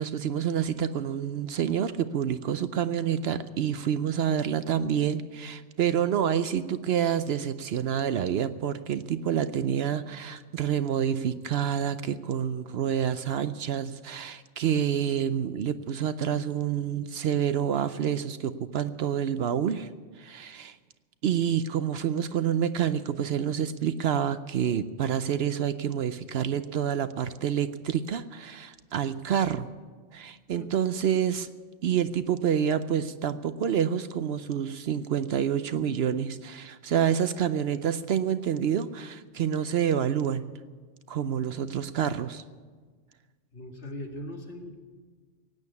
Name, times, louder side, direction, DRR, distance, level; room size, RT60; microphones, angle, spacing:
voice 1, 0.0-19.9 20.2-20.8 21.2-29.7 30.1-31.5 31.8-40.5 41.1-42.4, right 9 dB, 65° right, 12 dB, 0.8 m, -28 dB
voice 2, 43.5-44.7, left 1 dB, 65° left, 2 dB, 2.3 m, -39 dB
17.0 x 9.0 x 8.3 m, 1.5 s
omnidirectional pair, 1.2 m